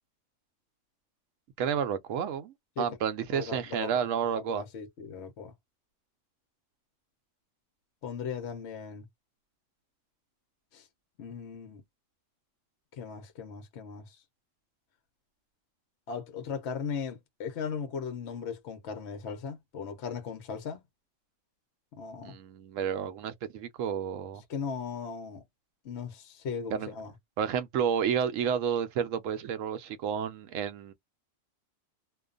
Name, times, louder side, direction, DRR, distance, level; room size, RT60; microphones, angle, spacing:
voice 1, 1.6-4.6 22.2-24.4 26.7-26.9 27.4-30.9, right 8 dB, 80° right, 1.0 m, -31 dB
voice 2, 3.3-5.5 8.0-9.1 10.7-10.9 11.2-11.8 12.9-14.2 16.1-20.8 21.9-22.4 24.5-25.4 25.8-27.1, left 6 dB, 65° left, 0.9 m, -38 dB
2.5 x 2.3 x 2.4 m
omnidirectional pair, 1.3 m